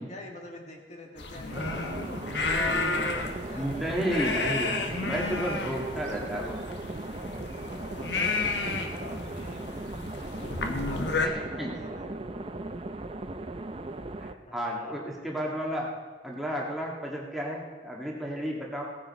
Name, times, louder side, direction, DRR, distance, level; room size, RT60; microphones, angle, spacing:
voice 1, 0.0-3.7 7.3-9.9 10.2-12.3 14.5-15.0, left 1 dB, 40° left, 1 dB, 2.1 m, -46 dB
sound 1, 1.2-11.3, left 3 dB, 70° left, 1.3 m, -32 dB
sound 2, 1.5-14.3, right 2 dB, 30° right, 0.6 m, -38 dB
voice 2, 3.6-4.7 5.0-6.7 11.2-11.7 14.2-15.9 16.2-18.8, equal, ahead, -3 dB, 1.7 m, -32 dB
17.0 x 10.0 x 4.1 m, 1.5 s
head